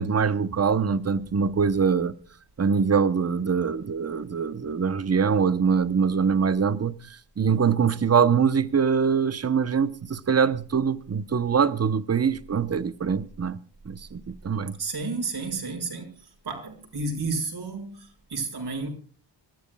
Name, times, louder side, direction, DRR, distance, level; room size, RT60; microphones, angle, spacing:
voice 1, 0.0-2.1 2.6-13.6 13.8-14.8, right 6 dB, 35° right, 1.0 m, -23 dB
voice 2, 14.8-18.9, right 3 dB, 60° right, 6.3 m, -32 dB
27.5 x 14.0 x 2.3 m
wide cardioid pair, 115°, 43 cm